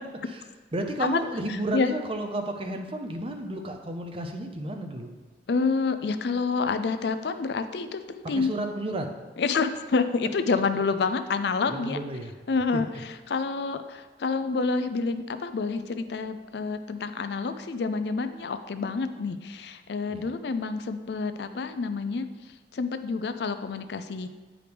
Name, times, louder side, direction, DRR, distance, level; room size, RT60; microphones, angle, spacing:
voice 1, 0.7-5.1 8.3-9.1 11.7-12.3 12.7-12.8 20.1-20.3, right 1 dB, 30° right, 5 dB, 0.6 m, -32 dB
voice 2, 5.5-8.5 9.4-12.0 12.5-22.3 22.7-24.3, left 4 dB, 65° left, 10 dB, 0.4 m, -28 dB
9.2 x 4.9 x 3.4 m, 1.3 s
head